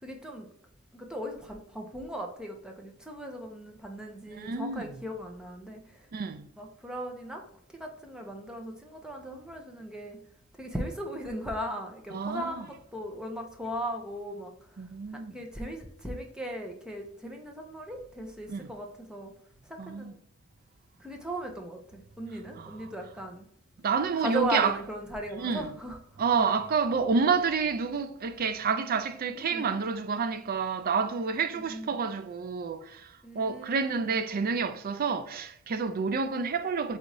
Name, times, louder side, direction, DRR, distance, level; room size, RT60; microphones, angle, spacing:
voice 1, 0.0-0.5 0.9-6.1 6.6-7.4 7.7-10.2 10.6-14.8 15.1-19.3 19.7-20.2 21.0-23.5 24.2-26.6 29.3-29.8 31.5-32.0 33.2-34.2, equal, 5° right, 0.6 m, -38 dB
voice 2, 4.4-4.8 6.1-6.5 12.1-12.5 14.8-15.3 18.5-18.7 19.8-20.1 23.8-24.7 25.3-25.7 26.2-33.0 33.3-37.0, right 5 dB, 45° right, 0.4 m, -29 dB
4.1 x 2.6 x 4.6 m
head